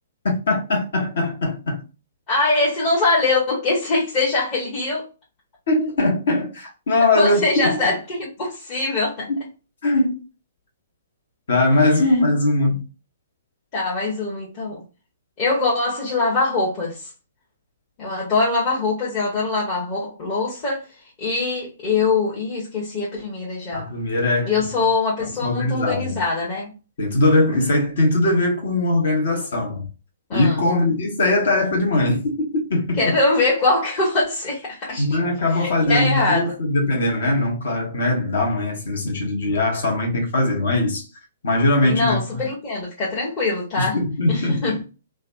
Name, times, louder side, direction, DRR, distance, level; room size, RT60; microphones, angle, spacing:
voice 1, 0.5-1.8 5.7-7.9 9.8-10.2 11.5-12.8 23.7-24.7 25.4-26.1 27.0-29.8 30.3-33.0 35.0-41.1 41.4-42.4 43.8-44.8, left 2 dB, 55° left, 1.2 m, -21 dB
voice 2, 2.3-5.0 7.1-9.3 13.7-14.8 15.4-17.1 18.0-20.8 21.2-23.9 24.5-26.7 30.3-30.6 33.0-35.2 35.5-36.5 41.8-44.0 44.3-44.8, left 3 dB, 30° left, 1.1 m, -22 dB
3.2 x 2.2 x 2.5 m
figure-of-eight pair, 120°, 0 cm